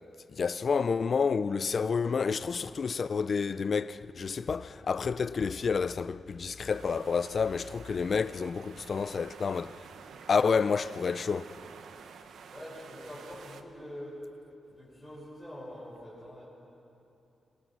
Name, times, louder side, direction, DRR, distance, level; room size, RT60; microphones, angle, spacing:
voice 1, 0.3-9.7 10.3-11.6, left 5 dB, 40° left, 0.5 m, -29 dB
sound 1, 6.7-13.6, right 6 dB, 85° right, 1.2 m, -50 dB
voice 2, 12.5-14.2 14.7-16.4, equal, 5° right, 6.7 m, -45 dB
27.0 x 24.5 x 6.2 m
wide cardioid pair, 165°, 0 cm